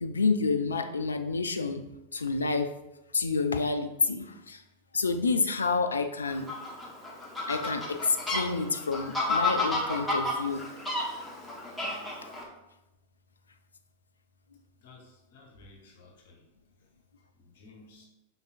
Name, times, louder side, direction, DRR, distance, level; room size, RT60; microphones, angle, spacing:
voice 1, 0.0-1.8 2.1-2.7 3.1-4.6 4.9-6.5 7.5-10.6, left 4 dB, 75° left, 8 dB, 0.4 m, -28 dB
Fowl, 6.3-12.4, left 2 dB, 10° left, 1.0 m, -31 dB
voice 2, 14.8-16.4 17.4-18.1, left 3 dB, 55° left, 1 dB, 0.9 m, -54 dB
5.4 x 3.9 x 2.5 m, 0.95 s
figure-of-eight pair, 90°, 0 cm